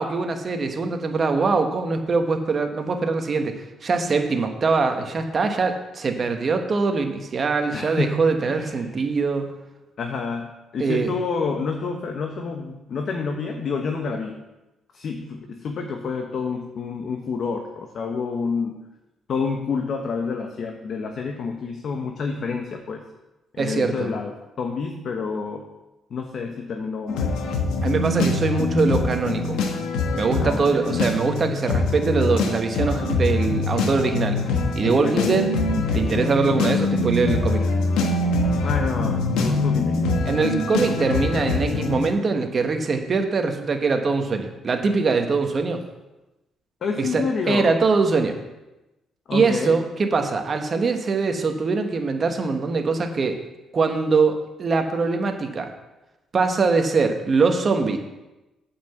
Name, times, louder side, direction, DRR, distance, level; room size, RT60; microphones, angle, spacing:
voice 1, 0.0-9.5 10.8-11.1 23.6-24.1 27.8-29.6 30.1-34.4 34.7-35.5 35.9-37.6 40.2-45.8 47.0-48.4 49.3-53.4 53.7-55.7 56.3-58.0, right 4 dB, 35° right, 5 dB, 1.3 m, -22 dB
voice 2, 7.7-8.9 10.0-14.4 14.9-18.8 19.3-23.0 23.5-25.7 26.1-27.3 30.4-30.8 35.0-35.4 38.6-40.0 46.8-47.7 49.3-49.8, left 5 dB, 55° left, 3 dB, 1.1 m, -28 dB
sound 1, 27.1-42.1, left 3 dB, 90° left, 1.3 m, -24 dB
8.6 x 5.8 x 7.1 m, 1.0 s
cardioid pair, 115°, 0 cm